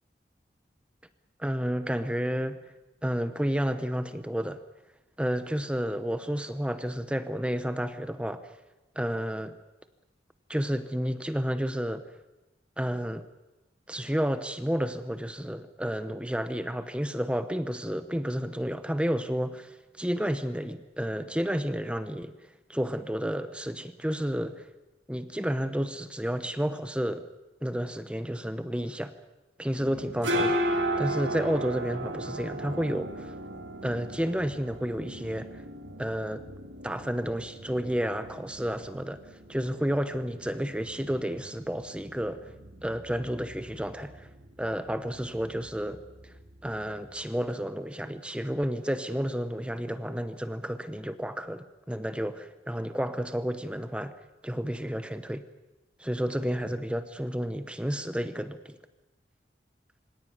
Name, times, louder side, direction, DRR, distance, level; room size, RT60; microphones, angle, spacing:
voice 1, 1.4-2.6 3.0-4.6 5.2-8.6 9.0-9.5 10.5-12.0 12.8-13.2 13.9-22.3 22.7-24.7 25.1-27.3 27.6-29.1 29.6-33.3 33.8-35.6 36.0-36.4 36.8-42.5 42.8-44.3 44.6-46.3 46.6-54.1 54.4-55.4 56.0-58.8, equal, 5° right, 10 dB, 0.8 m, -31 dB
sound 1, 29.8-47.3, right 1 dB, 80° right, 3.1 m, -36 dB
25.0 x 17.5 x 9.5 m, 1.0 s
head